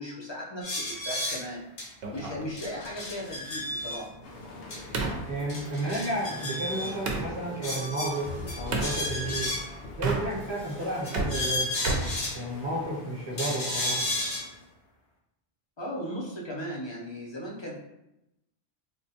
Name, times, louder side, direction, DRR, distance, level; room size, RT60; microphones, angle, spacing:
voice 1, 0.0-1.6 2.1-4.1 15.8-17.8, equal, 35° left, -4 dB, 0.5 m, -37 dB
sound 1, 0.6-1.4 1.8-1.9 2.1-2.2 2.6-4.0 4.7-4.8 5.1-5.2 5.5-6.9 7.6-9.8 10.6-12.4 13.4-14.4, left 1 dB, 50° left, 0.9 m, -33 dB
sound 2, 2.0-7.3 8.7-9.0 9.9-10.6 10.9-12.9, right 3 dB, 65° right, 0.8 m, -34 dB
sound 3, 4.2-14.7, left 2 dB, 80° left, 0.9 m, -43 dB
voice 2, 5.3-9.6 10.0-11.7 12.0-14.0, right 1 dB, 30° right, -7 dB, 0.7 m, -32 dB
3.6 x 2.1 x 2.7 m, 0.89 s
omnidirectional pair, 1.2 m